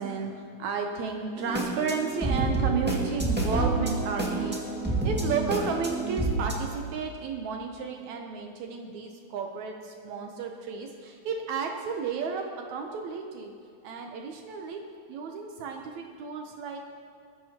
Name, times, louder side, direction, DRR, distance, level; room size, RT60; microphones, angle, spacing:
voice 1, 0.0-13.6 13.8-16.8, right 5 dB, 75° right, 3 dB, 2.1 m, -33 dB
sound 1, 1.4-6.5, right 2 dB, 5° right, 1.2 m, -28 dB
20.5 x 13.5 x 3.0 m, 2.3 s
omnidirectional pair, 3.4 m